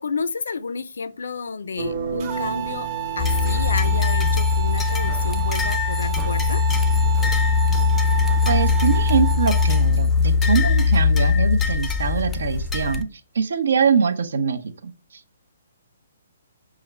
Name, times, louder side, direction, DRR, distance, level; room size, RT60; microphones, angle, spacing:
voice 1, 0.0-2.9 3.2-6.6, left 4 dB, 85° left, 0.4 m, -31 dB
Five Minute Meditation Timer, 1.8-4.7, right 5 dB, 55° right, 1.1 m, -32 dB
sound 1, 2.2-9.8, right 14 dB, 30° right, 0.8 m, -31 dB
sound 2, 3.2-13.0, left 5 dB, 10° left, 0.4 m, -20 dB
voice 2, 8.5-13.1 13.3-14.9, right 6 dB, 75° right, 0.7 m, -23 dB
5.5 x 2.5 x 3.1 m
hypercardioid pair, 160°, 0 cm